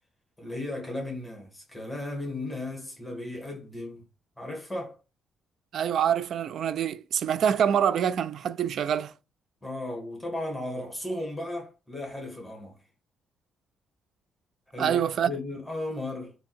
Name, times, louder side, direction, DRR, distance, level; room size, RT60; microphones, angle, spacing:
voice 1, 0.4-4.1 4.4-5.0 9.6-12.8 14.7-15.0 15.3-16.4, left 1 dB, 10° left, 1.8 m, -35 dB
voice 2, 5.7-9.1 14.8-15.3, right 8 dB, 65° right, 0.3 m, -25 dB
3.5 x 2.8 x 4.4 m
cardioid pair, 90°, 0 cm